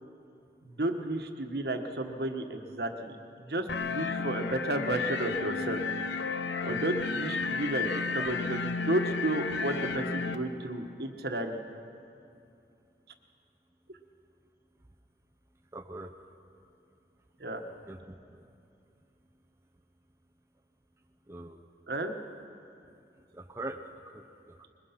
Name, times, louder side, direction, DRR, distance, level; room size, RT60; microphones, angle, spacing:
voice 1, 0.6-5.8 6.6-11.6 17.4-17.6 21.9-22.1, right 1 dB, 65° right, 5 dB, 1.3 m, -32 dB
sound 1, 3.7-10.4, left 5 dB, 90° left, 0.9 m, -33 dB
voice 2, 15.7-16.2 17.9-18.4 21.3-21.6 23.3-24.7, right 2 dB, 15° right, 2 dB, 0.7 m, -43 dB
22.0 x 21.0 x 5.8 m, 2.6 s
head